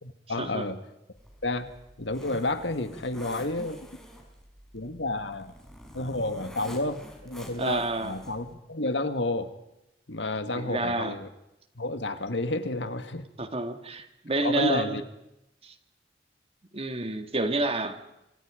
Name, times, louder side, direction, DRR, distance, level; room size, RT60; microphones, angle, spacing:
voice 1, 0.0-0.8 1.4-1.7 2.0-3.9 4.7-5.5 5.9-9.5 10.1-11.3 11.8-13.3 14.4-15.0, left 2 dB, 80° left, 9 dB, 1.9 m, -30 dB
Zipper (clothing), 1.2-8.5, equal, 5° left, 4.9 m, -47 dB
voice 2, 7.6-8.2 10.5-11.2 13.4-15.0 15.6-15.7 16.7-18.0, right 2 dB, 35° right, 7 dB, 2.1 m, -29 dB
27.0 x 25.5 x 5.1 m, 0.90 s
head